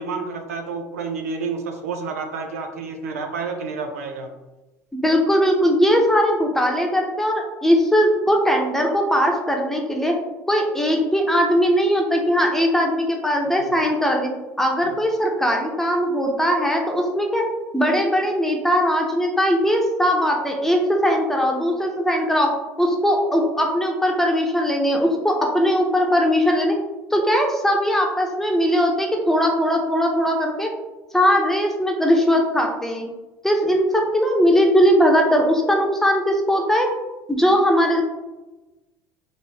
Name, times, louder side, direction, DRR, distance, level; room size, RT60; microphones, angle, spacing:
voice 1, 0.0-4.3 13.6-13.7, right 4 dB, 80° right, 3 dB, 0.5 m, -29 dB
voice 2, 4.9-10.1 10.5-14.3 14.6-17.4 17.7-22.5 22.8-26.7 27.1-30.7 31.1-33.1 33.4-36.9 37.3-38.0, equal, 5° left, 1 dB, 0.8 m, -19 dB
3.4 x 2.5 x 3.3 m, 1.1 s
hypercardioid pair, 65°, 8 cm